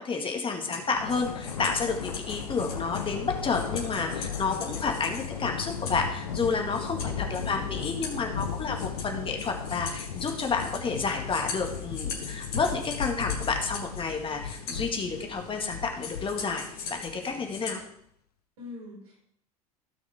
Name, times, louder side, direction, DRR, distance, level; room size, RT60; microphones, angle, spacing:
voice 1, 0.0-17.8, left 4 dB, 25° left, 3 dB, 1.9 m, -30 dB
sound 1, 0.6-17.8, left 5 dB, 55° left, 2.8 m, -41 dB
Thunder, 0.9-17.5, left 7 dB, 85° left, 0.7 m, -36 dB
voice 2, 18.6-19.2, left 2 dB, 75° right, -3 dB, 4.9 m, -46 dB
16.5 x 6.3 x 3.6 m, 0.71 s
figure-of-eight pair, 70°, 19 cm